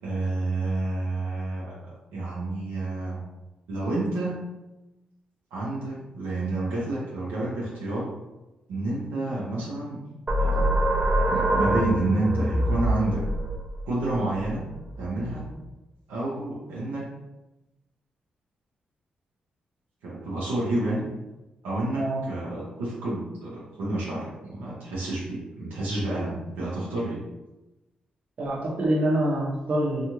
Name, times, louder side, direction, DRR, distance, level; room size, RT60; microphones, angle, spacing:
voice 1, 0.0-3.2 3.7-4.5 5.5-8.1 8.7-10.0 10.4-10.8 11.3-13.2 13.9-14.7 15.0-15.5 16.1-17.0 20.0-21.0 21.6-27.2, right 2 dB, 90° right, -6 dB, 0.7 m, -29 dB
sound 1, 10.3-15.5, right 1 dB, 30° right, 0.6 m, -25 dB
voice 2, 28.4-30.1, right 1 dB, 55° right, -3 dB, 0.8 m, -25 dB
2.6 x 2.4 x 3.0 m, 1.0 s
supercardioid pair, 55°, 3 cm